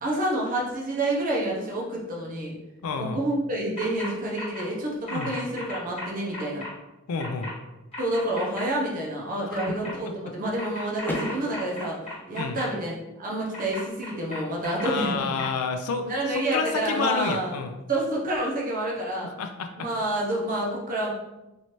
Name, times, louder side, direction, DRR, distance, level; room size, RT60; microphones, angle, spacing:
voice 1, 0.0-2.5 3.0-6.6 8.0-12.0 12.3-12.9 13.2-15.3 16.0-17.6 17.9-19.3 19.8-21.1, right 1 dB, 40° right, -3 dB, 0.8 m, -28 dB
voice 2, 2.8-3.2 5.1-5.3 7.1-7.5 9.5-9.6 9.9-10.0 12.3-12.6 14.8-17.8 19.4-19.7, left 5 dB, 85° left, 6 dB, 0.4 m, -29 dB
sound 1, 3.8-4.1 4.4-4.6 5.1-6.7 7.2-7.5 7.9-8.6 9.6-9.9 10.6-12.6 13.5-14.9 15.4-15.5, left 2 dB, 25° left, 1.3 m, -36 dB
Car / Door, 11.0-13.0, equal, 10° left, 0.3 m, -36 dB
3.1 x 2.7 x 3.0 m, 1.0 s
head